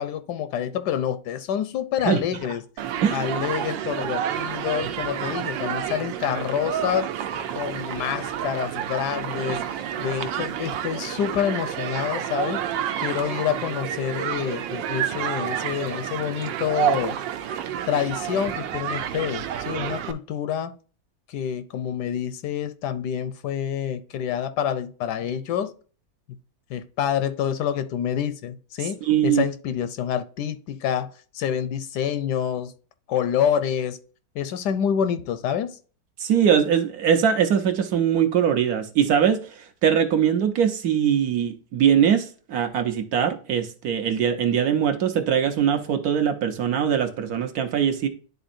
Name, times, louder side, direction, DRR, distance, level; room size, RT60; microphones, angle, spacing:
voice 1, 0.0-2.6 3.1-7.1 7.5-9.6 10.0-12.6 13.0-17.2 17.9-20.7 21.3-25.7 26.3-26.4 26.7-32.7 33.1-34.0 34.3-35.8, left 9 dB, 75° left, 1.1 m, -27 dB
Human group actions, 2.8-20.1, right 10 dB, 85° right, 1.4 m, -29 dB
voice 2, 29.0-29.4 36.2-48.1, right 8 dB, 65° right, 1.1 m, -22 dB
10.5 x 4.0 x 2.5 m
omnidirectional pair, 1.9 m